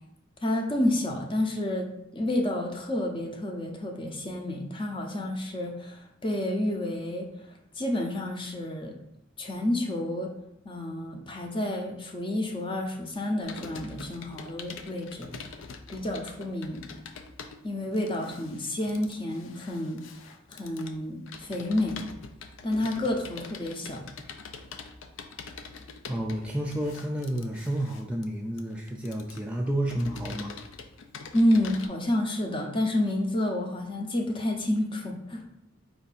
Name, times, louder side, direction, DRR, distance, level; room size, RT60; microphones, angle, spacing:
voice 1, 0.4-7.3 7.8-8.9 9.4-10.3 10.6-15.3 15.9-16.8 17.6-20.0 20.5-22.0 22.6-24.0 31.3-35.4, left 1 dB, 25° left, 2 dB, 0.6 m, -29 dB
Computer keyboard, 13.4-31.9, left 5 dB, 70° left, 0.4 m, -44 dB
voice 2, 26.1-30.5, right 1 dB, 5° right, -1 dB, 0.3 m, -30 dB
4.5 x 2.6 x 4.1 m, 0.83 s
head